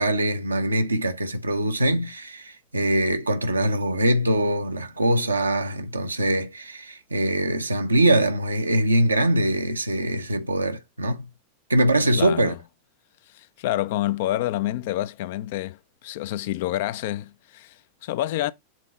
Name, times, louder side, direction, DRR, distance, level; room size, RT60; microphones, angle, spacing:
voice 1, 0.0-11.3 11.7-12.5, right 1 dB, 80° right, 1.0 m, -23 dB
voice 2, 12.2-12.5 13.3-18.5, left 14 dB, 50° left, 0.6 m, -28 dB
7.5 x 3.8 x 4.1 m
figure-of-eight pair, 90°, 0 cm